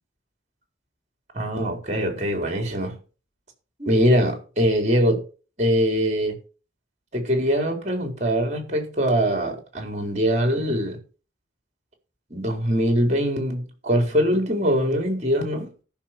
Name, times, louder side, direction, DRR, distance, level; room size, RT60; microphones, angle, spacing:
voice 1, 1.3-3.0 3.8-5.2 5.6-6.4 7.1-11.0 12.3-15.7, equal, 40° right, 4.2 m, -22 dB
14.0 x 6.6 x 5.9 m
head